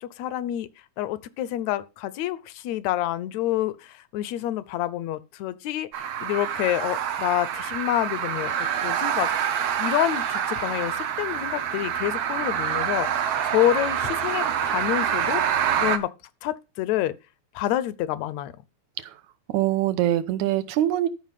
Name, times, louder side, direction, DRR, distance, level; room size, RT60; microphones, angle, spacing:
voice 1, 0.0-0.7 1.0-5.9 6.2-15.4 15.8-16.1 16.4-17.2 17.6-18.5, left 13 dB, 75° left, 1.9 m, -28 dB
sound 1, 5.9-16.0, right 9 dB, 65° right, 1.9 m, -26 dB
voice 2, 19.5-21.1, right 13 dB, 80° right, 2.2 m, -23 dB
13.0 x 5.6 x 5.8 m
omnidirectional pair, 3.4 m